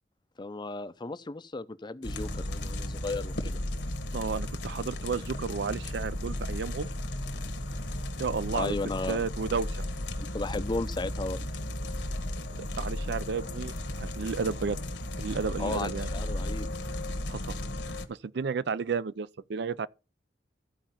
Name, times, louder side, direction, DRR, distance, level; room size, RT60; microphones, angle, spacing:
voice 1, 0.4-3.6 8.5-9.2 10.2-11.4 15.6-16.7, left 3 dB, 25° left, 0.5 m, -35 dB
sound 1, 2.0-18.1, left 1 dB, 75° left, 1.4 m, -35 dB
voice 2, 4.1-6.9 8.2-8.8 9.1-9.7 12.5-13.7 14.0-14.8 15.2-16.1 17.3-17.5 18.1-19.9, right 5 dB, 65° right, 0.4 m, -32 dB
14.0 x 4.9 x 5.7 m
head